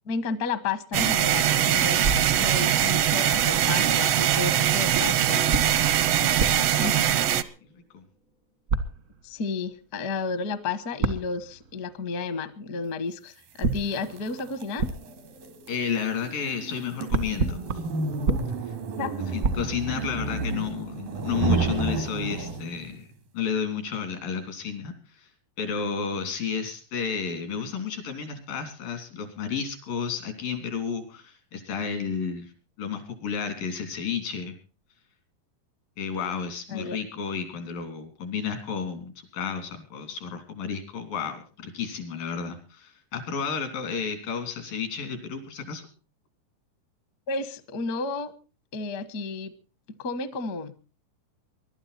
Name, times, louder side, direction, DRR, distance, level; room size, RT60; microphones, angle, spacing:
voice 1, 0.1-5.5 6.8-7.0 9.2-14.9 19.0-19.3 36.7-37.0 47.3-48.3 48.7-49.5 50.0-50.7, left 4 dB, 60° left, 13 dB, 0.9 m, -32 dB
sound 1, 0.9-7.4, right 10 dB, 75° right, 1.4 m, -22 dB
sound 2, 2.0-3.2 4.9-7.8 8.7-9.5 11.0-12.1 13.6-16.5 16.8-20.4, right 4 dB, 60° right, 0.8 m, -31 dB
voice 2, 6.2-7.1 7.6-8.0 15.7-17.6 18.6-18.7 19.3-23.1 23.3-25.3 25.6-32.5 32.8-34.6 36.0-45.8, left 6 dB, 85° left, 7 dB, 5.1 m, -32 dB
sound 3, 13.6-22.9, right 4 dB, 90° right, 3.9 m, -32 dB
22.5 x 12.5 x 4.2 m, 0.35 s
omnidirectional pair, 3.9 m